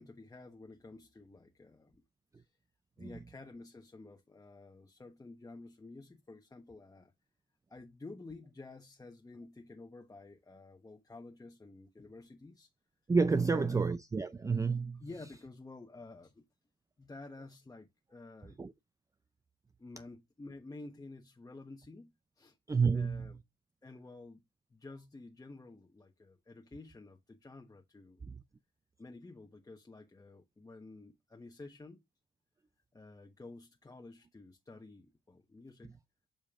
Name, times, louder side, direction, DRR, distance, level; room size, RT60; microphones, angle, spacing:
voice 1, 0.0-2.0 2.3-2.5 3.0-7.1 7.7-12.7 13.4-13.9 15.0-16.4 17.0-18.6 19.8-22.6 22.9-23.4 23.8-24.4 24.7-28.2 29.0-32.0 32.9-36.0, left 2 dB, 15° left, 1.1 m, -51 dB
voice 2, 13.1-15.0 18.6-18.7 22.7-23.4 28.2-28.4, right 4 dB, 15° right, 0.4 m, -30 dB
8.6 x 5.2 x 2.4 m
cardioid pair, 90°, 20 cm